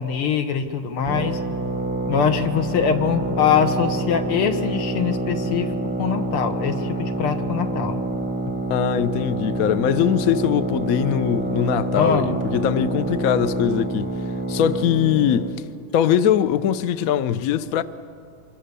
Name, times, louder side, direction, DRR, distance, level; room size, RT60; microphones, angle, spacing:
voice 1, 0.0-1.4 2.1-8.0 12.0-12.4, left 7 dB, 85° left, 2.2 m, -23 dB
sound 1, 1.1-15.6, right 2 dB, 10° right, 0.5 m, -27 dB
voice 2, 8.7-14.1 14.5-15.5 15.9-17.8, left 9 dB, 65° left, 0.8 m, -21 dB
25.5 x 23.0 x 6.9 m
omnidirectional pair, 2.4 m